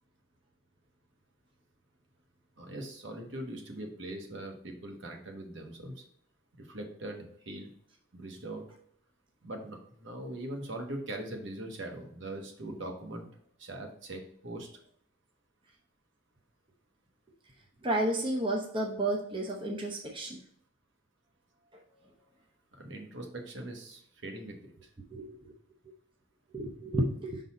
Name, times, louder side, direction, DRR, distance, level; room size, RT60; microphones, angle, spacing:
voice 1, 2.6-6.0 6.6-7.7 8.1-8.6 9.4-13.3 13.6-14.7 22.7-24.9, right 1 dB, 60° right, 2 dB, 1.2 m, -41 dB
voice 2, 17.8-20.4 25.1-25.5 26.5-27.4, right 1 dB, 25° right, -1 dB, 0.8 m, -31 dB
6.1 x 4.0 x 4.1 m, 0.65 s
head